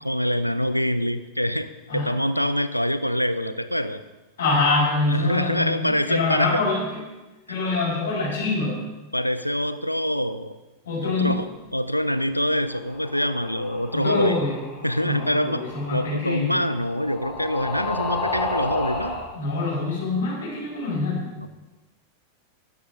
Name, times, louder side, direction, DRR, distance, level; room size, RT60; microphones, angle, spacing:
voice 1, 0.0-4.0 5.1-6.6 7.5-7.6 9.1-10.6 11.0-14.4 14.8-15.6 15.9-19.2 21.4-21.5, equal, 90° left, 13 dB, 0.6 m, -25 dB
voice 2, 4.4-7.0 7.5-8.7 10.8-11.3 13.9-14.6 15.0-16.6 19.3-21.3, left 3 dB, 65° left, -6 dB, 4.9 m, -25 dB
sound 1, 12.6-19.3, left 3 dB, 25° left, 4.5 m, -33 dB
13.0 x 12.0 x 3.8 m, 1.1 s
figure-of-eight pair, 90°, 0 cm